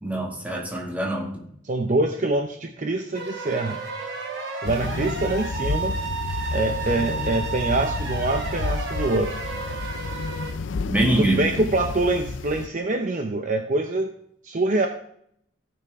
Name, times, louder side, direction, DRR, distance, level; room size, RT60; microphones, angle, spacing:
voice 1, 0.0-1.4 10.9-11.5, right 1 dB, 10° right, -2 dB, 2.1 m, -24 dB
voice 2, 1.6-3.8 4.6-6.0 6.5-9.4 11.2-14.1 14.4-14.9, right 2 dB, 40° right, 4 dB, 0.7 m, -25 dB
sound 1, 3.1-10.5, right 4 dB, 80° right, 2.8 m, -32 dB
sound 2, 4.6-12.7, left 4 dB, 75° left, 0.5 m, -31 dB
16.5 x 6.0 x 3.5 m, 0.69 s
head